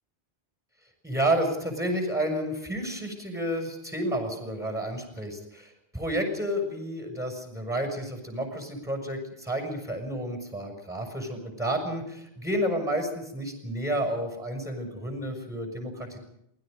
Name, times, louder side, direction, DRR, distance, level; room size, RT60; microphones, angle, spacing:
voice 1, 1.0-16.2, right 1 dB, 5° right, 3 dB, 6.5 m, -30 dB
28.5 x 21.0 x 5.3 m, 0.77 s
omnidirectional pair, 1.1 m